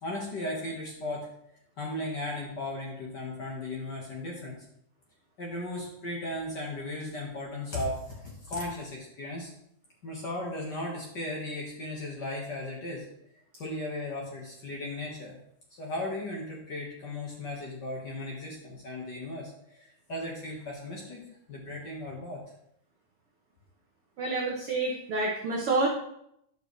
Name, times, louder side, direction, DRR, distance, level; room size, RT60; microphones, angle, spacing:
voice 1, 0.0-1.3 1.8-4.5 5.4-9.5 10.0-13.0 13.6-15.4 15.8-21.2 21.5-22.4, left 1 dB, 60° left, -2 dB, 1.1 m, -36 dB
voice 2, 24.2-25.9, right 3 dB, 80° right, -2 dB, 1.2 m, -28 dB
11.5 x 6.0 x 3.1 m, 0.75 s
omnidirectional pair, 4.2 m